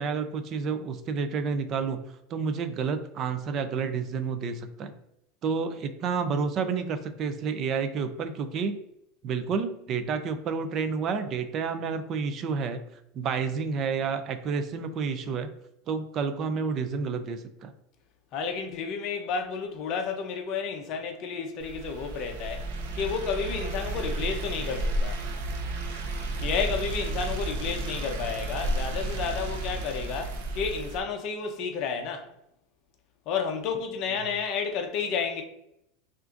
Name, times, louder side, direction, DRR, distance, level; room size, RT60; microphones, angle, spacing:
voice 1, 0.0-2.0 2.3-4.9 5.4-8.8 9.2-12.8 13.1-15.5 15.9-17.7, right 5 dB, 30° right, 0.4 m, -30 dB
voice 2, 18.3-22.7 22.9-25.2 26.4-32.3 33.3-35.4, left 6 dB, 40° left, 0.7 m, -31 dB
sound 1, 21.6-31.0, right 2 dB, 90° right, 0.6 m, -32 dB
5.6 x 2.5 x 2.5 m
supercardioid pair, 165°, 0 cm